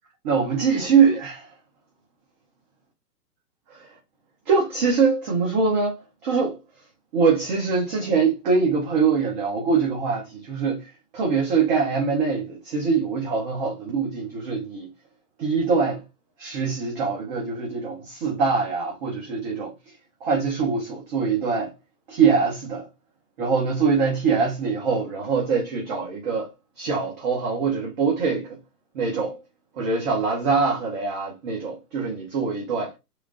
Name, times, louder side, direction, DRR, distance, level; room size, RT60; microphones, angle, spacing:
voice 1, 0.2-1.5 3.7-3.9 4.5-6.6 7.1-14.9 15.4-16.0 16.4-19.7 20.2-21.7 22.1-22.9 23.4-28.6 28.9-29.4 29.8-32.9, right 5 dB, 30° right, 0.6 m, -23 dB
3.1 x 2.3 x 2.4 m
hypercardioid pair, 130°, 47 cm